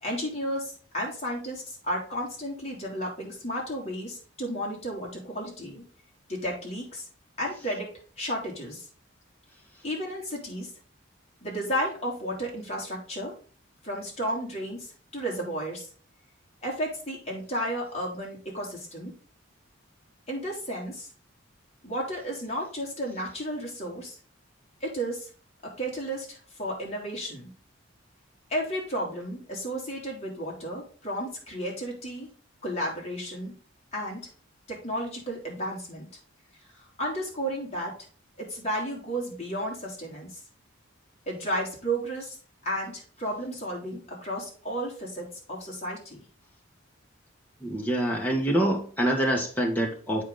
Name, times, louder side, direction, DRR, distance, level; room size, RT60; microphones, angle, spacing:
voice 1, 0.0-5.8 6.3-7.1 7.4-8.9 9.8-10.7 11.4-13.4 13.8-15.9 16.6-19.2 20.3-21.1 21.8-24.2 24.8-25.3 25.6-27.5 28.5-32.3 32.6-33.5 33.9-34.2 34.7-36.1 36.7-38.0 38.4-40.4 41.3-42.4 42.6-46.3, equal, 30° left, -3 dB, 3.1 m, -33 dB
voice 2, 47.6-50.2, right 1 dB, 10° left, -1 dB, 1.5 m, -26 dB
8.3 x 4.9 x 3.8 m, 0.41 s
head